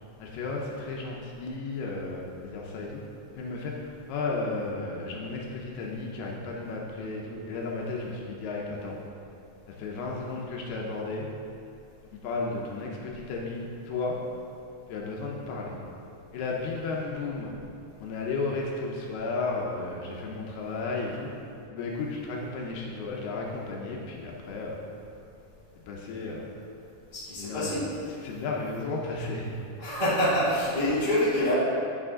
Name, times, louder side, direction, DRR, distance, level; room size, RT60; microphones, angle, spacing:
voice 1, 0.2-3.0 3.4-9.0 9.7-11.3 12.1-14.2 14.9-15.8 16.3-17.5 18.0-21.3 21.7-24.8 25.9-26.5 27.4-27.9 28.2-29.5, left 3 dB, 80° left, -2 dB, 2.5 m, -33 dB
voice 2, 27.1-27.9 29.8-31.5, left 1 dB, 75° right, -11 dB, 0.4 m, -26 dB
11.0 x 6.0 x 3.7 m, 2.6 s
omnidirectional pair, 5.1 m